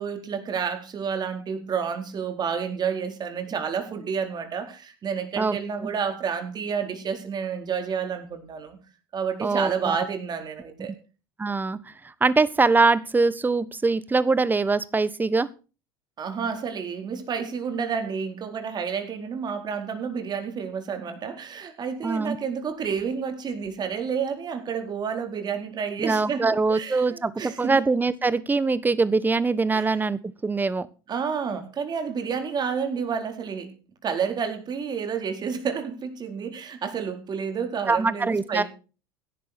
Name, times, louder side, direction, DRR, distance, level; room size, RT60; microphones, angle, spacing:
voice 1, 0.0-8.8 9.1-10.9 16.2-27.8 29.7-30.0 31.1-33.7 34.0-38.6, right 6 dB, 35° right, 6 dB, 4.3 m, -30 dB
voice 2, 9.4-10.0 11.4-11.9 12.2-15.5 22.0-22.4 26.0-30.9 37.9-38.6, right 3 dB, 15° right, 17 dB, 1.3 m, -23 dB
17.0 x 11.0 x 4.5 m, 0.35 s
hypercardioid pair, 80°, 12 cm